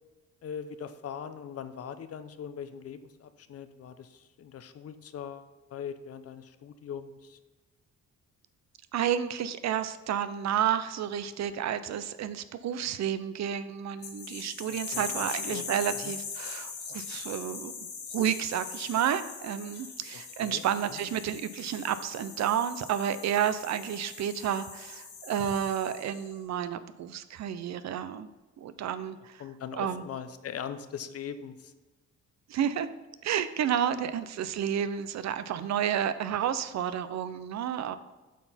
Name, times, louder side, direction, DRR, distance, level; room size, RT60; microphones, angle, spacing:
voice 1, 0.4-7.4 14.9-15.7 16.0-16.1 20.4-20.6 20.9-21.0 29.4-31.7, left 8 dB, 50° left, 11 dB, 0.7 m, -41 dB
voice 2, 8.9-17.7 18.1-28.3 28.6-29.4 29.7-30.1 32.5-32.9 33.2-38.0, right 9 dB, 65° right, 13 dB, 0.6 m, -31 dB
sound 1, 14.0-26.3, left 5 dB, 70° left, 2.0 m, -41 dB
8.3 x 5.9 x 4.2 m, 1.2 s
cardioid pair, 90°, 30 cm